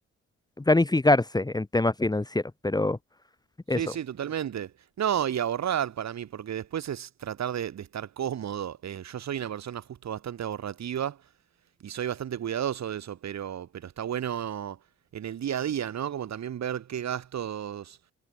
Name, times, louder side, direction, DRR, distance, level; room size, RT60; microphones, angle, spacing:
voice 1, 0.6-3.0 3.7-3.8, left 2 dB, 15° left, 1.6 m, -24 dB
voice 2, 3.7-4.7 5.0-11.2 11.8-14.8 15.1-18.0, right 9 dB, 60° right, 6.1 m, -32 dB
cardioid pair, 90°, 30 cm